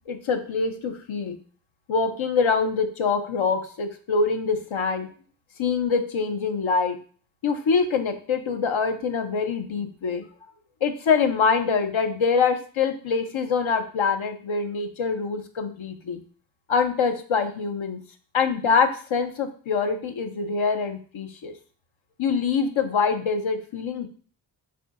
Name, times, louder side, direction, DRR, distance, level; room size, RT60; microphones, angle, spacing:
voice 1, 0.1-1.4 1.9-5.1 5.6-7.0 7.4-10.2 10.8-16.2 16.7-18.0 18.3-21.5 22.2-24.1, left 5 dB, 80° left, 6 dB, 0.7 m, -24 dB
7.0 x 2.7 x 2.5 m, 0.42 s
wide cardioid pair, 50°, 47 cm